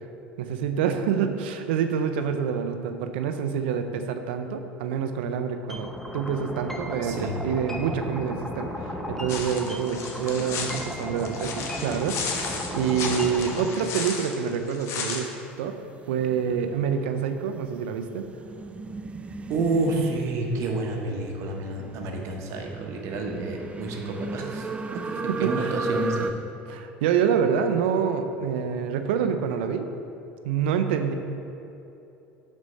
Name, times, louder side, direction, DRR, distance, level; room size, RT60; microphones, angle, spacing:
voice 1, 0.4-15.3 15.6-15.8 16.1-18.2 25.3-25.7 26.7-29.9 30.4-31.1, right 7 dB, 80° right, 7 dB, 0.5 m, -27 dB
sound 1, 5.7-13.7, left 1 dB, 5° left, 0.8 m, -35 dB
voice 2, 7.0-7.4 19.5-24.7 25.2-26.3, right 3 dB, 60° right, 2 dB, 0.9 m, -29 dB
sound 2, 9.3-15.2, left 5 dB, 55° left, 0.9 m, -34 dB
sound 3, 15.8-26.3, right 2 dB, 20° right, 0.4 m, -36 dB
6.3 x 4.3 x 5.3 m, 2.9 s
hypercardioid pair, 80°, 6 cm